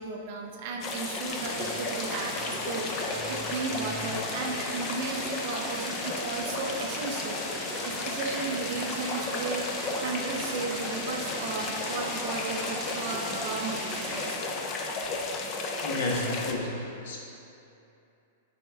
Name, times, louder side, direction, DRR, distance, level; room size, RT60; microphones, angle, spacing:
voice 1, 0.0-7.4 7.8-9.7 10.0-14.5, right 4 dB, 40° right, 1 dB, 0.6 m, -35 dB
sound 1, 0.8-16.5, left 3 dB, 20° left, 0.4 m, -34 dB
sound 2, 1.3-14.3, right 1 dB, 10° right, 0.9 m, -40 dB
voice 2, 15.8-17.2, left 2 dB, 55° left, -2 dB, 1.2 m, -31 dB
8.9 x 4.2 x 3.5 m, 2.7 s
supercardioid pair, 175°, 0 cm